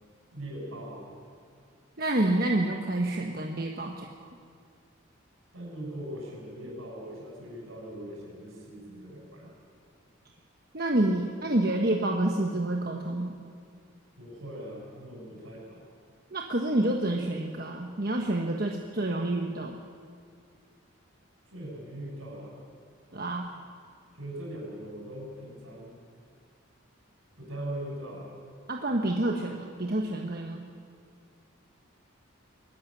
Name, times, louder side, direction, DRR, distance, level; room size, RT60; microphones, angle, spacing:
voice 1, 0.3-1.1 5.5-9.5 14.2-15.9 21.5-22.6 24.1-26.0 27.4-28.3, right 1 dB, 85° right, -4 dB, 6.9 m, -40 dB
voice 2, 2.0-4.1 10.7-13.3 16.3-19.7 23.1-23.5 28.7-30.6, right 1 dB, 45° right, 1 dB, 1.3 m, -28 dB
21.0 x 14.5 x 10.0 m, 2.2 s
head